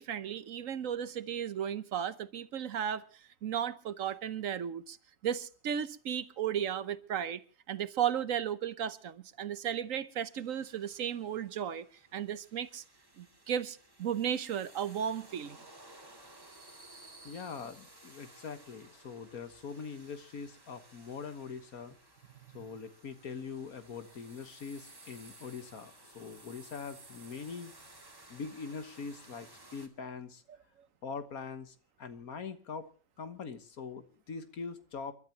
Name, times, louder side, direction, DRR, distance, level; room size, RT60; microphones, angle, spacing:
voice 1, 0.0-3.1 3.4-5.0 5.2-7.4 7.7-11.8 12.1-12.8 13.2-15.6, right 9 dB, 65° right, 14 dB, 1.2 m, -35 dB
sound 1, 10.3-29.9, right 2 dB, 15° right, 2.0 m, -56 dB
voice 2, 17.2-21.9 22.5-27.7 28.3-30.4 31.0-32.9 33.2-35.1, left 5 dB, 75° left, 10 dB, 1.8 m, -43 dB
29.5 x 12.5 x 2.9 m, 0.37 s
omnidirectional pair, 1.5 m